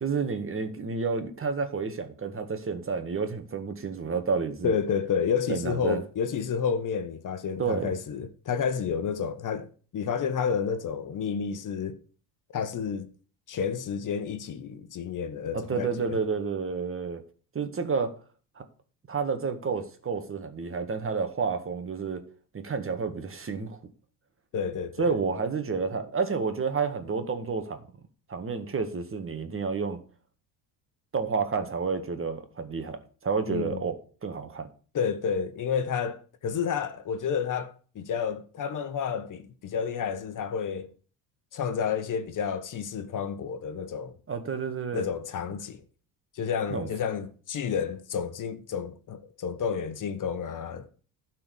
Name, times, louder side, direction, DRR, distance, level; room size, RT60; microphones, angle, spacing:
voice 1, 0.0-4.7 5.5-6.0 7.6-7.9 15.5-17.2 17.6-18.1 18.6-18.7 19.1-22.2 22.5-23.8 25.0-27.8 28.3-30.0 31.1-34.7 44.3-45.1 46.7-46.9, right 5 dB, 30° right, 1.8 m, -30 dB
voice 2, 4.6-9.7 9.9-12.0 12.5-13.1 13.5-16.2 24.5-25.2 33.5-33.8 34.9-40.9 41.5-44.2 44.9-45.8 46.3-50.9, left 7 dB, 45° left, 1.3 m, -30 dB
12.0 x 4.5 x 8.4 m
supercardioid pair, 80°, 42 cm